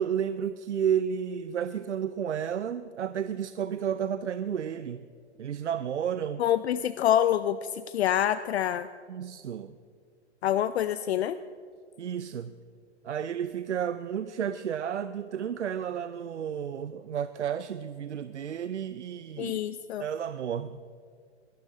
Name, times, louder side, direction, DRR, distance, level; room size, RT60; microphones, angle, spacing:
voice 1, 0.0-5.1 5.4-6.4 9.1-9.8 12.0-12.5 13.0-19.6 20.0-20.8, right 8 dB, 90° right, 13 dB, 0.6 m, -32 dB
voice 2, 6.4-8.9 10.4-11.4 19.4-20.0, left 11 dB, 65° left, 14 dB, 0.5 m, -26 dB
22.0 x 11.5 x 3.8 m, 2.1 s
hypercardioid pair, 120°, 34 cm